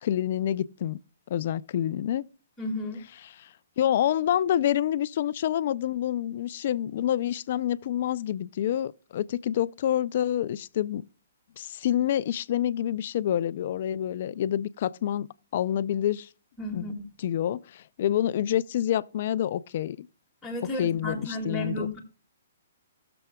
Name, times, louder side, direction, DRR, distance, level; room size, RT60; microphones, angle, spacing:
voice 1, 0.0-1.0 1.3-2.2 3.0-3.5 3.8-11.0 11.6-15.3 15.5-16.3 16.7-17.6 18.0-20.1 20.6-21.9, left 11 dB, 45° left, 0.4 m, -27 dB
voice 2, 2.6-3.0 16.6-17.1 20.4-22.0, left 1 dB, 5° left, 2.1 m, -33 dB
20.0 x 6.9 x 2.3 m
hypercardioid pair, 160°, 0 cm